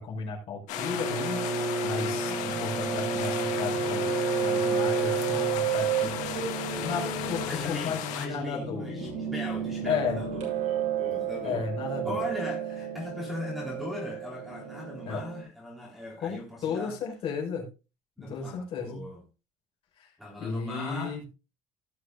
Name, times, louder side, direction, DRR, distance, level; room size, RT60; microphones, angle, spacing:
voice 1, 0.0-1.4 1.8-6.1 6.8-8.9 9.8-10.2 11.4-12.2 15.0-15.2 16.2-17.7 18.2-19.1 20.0-20.1 20.4-21.2, left 5 dB, 45° left, 5.1 m, -34 dB
sound 1, 0.7-8.3, left 12 dB, 70° left, 1.8 m, -35 dB
Bowed string instrument, 0.7-6.2, right 1 dB, 15° right, 0.7 m, -31 dB
Piano, 1.0-15.4, right 9 dB, 65° right, 6.5 m, -33 dB
voice 2, 2.0-2.6 6.1-6.5 7.4-11.6 12.0-17.0 18.2-19.2 20.2-21.2, left 2 dB, ahead, 3.4 m, -39 dB
18.0 x 6.6 x 2.5 m
cardioid pair, 160°, 13 cm